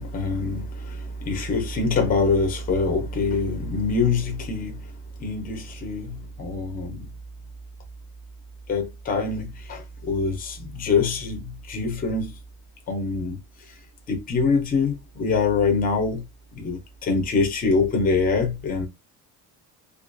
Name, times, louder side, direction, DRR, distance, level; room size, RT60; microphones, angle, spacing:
voice 1, 0.0-4.8 5.2-7.1 8.7-12.3 12.9-13.4 14.1-16.2 16.5-18.9, left 4 dB, 25° left, 0.5 m, -24 dB
2.3 x 2.2 x 2.5 m
cardioid pair, 175°, 36 cm